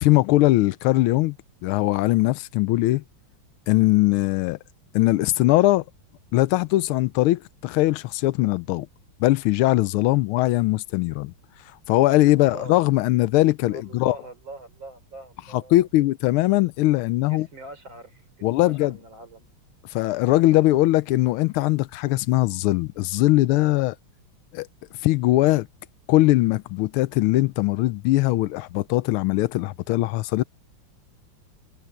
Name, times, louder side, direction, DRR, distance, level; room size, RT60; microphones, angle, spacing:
voice 1, 0.0-1.4 1.6-3.0 3.7-4.6 4.9-5.8 6.3-8.9 9.2-11.3 11.9-14.2 15.5-17.5 18.4-19.0 19.9-24.0 24.5-24.7 25.0-25.7 26.1-30.4, left 17 dB, 85° left, 1.4 m, -20 dB
voice 2, 12.3-12.8 13.7-15.8 17.3-19.5 20.3-20.5, right 2 dB, 60° right, 5.3 m, -43 dB
omnidirectional pair, 2.3 m